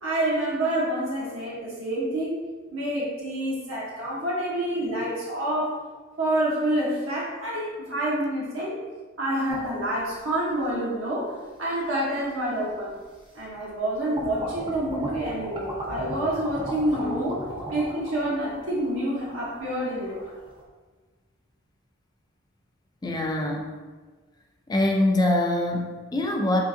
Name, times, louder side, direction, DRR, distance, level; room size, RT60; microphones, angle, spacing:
voice 1, 0.0-2.4 2.7-5.8 6.2-8.8 9.2-12.9 13.3-17.4 17.7-20.2, right 1 dB, 75° right, -6 dB, 0.9 m, -27 dB
sound 1, 9.5-10.6 11.4-11.5 12.7-12.8 13.2-13.8 14.1-20.6, right 1 dB, 25° right, 0.7 m, -37 dB
voice 2, 23.0-23.7 24.7-26.6, left 1 dB, 20° left, 1 dB, 0.4 m, -24 dB
3.7 x 3.4 x 2.6 m, 1.4 s
head